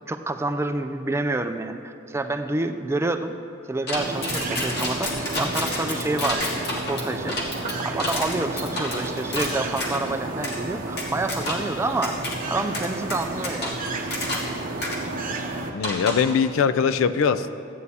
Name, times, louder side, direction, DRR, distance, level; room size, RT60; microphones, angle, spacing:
voice 1, 0.1-3.4 3.7-6.4 6.7-7.4 7.8-12.2 12.5-13.8, right 2 dB, 15° right, 7 dB, 0.3 m, -28 dB
sound 1, 3.9-10.0 10.4-10.6 11.0-11.7 12.0-12.3 12.7-14.5 14.8-15.0 15.8-16.3, left 2 dB, 55° left, 1.6 m, -30 dB
sound 2, 3.9-15.7, right 2 dB, 45° right, 0.8 m, -31 dB
voice 2, 15.7-17.5, left 6 dB, 75° left, 11 dB, 0.4 m, -21 dB
15.0 x 9.3 x 2.8 m, 2.6 s
head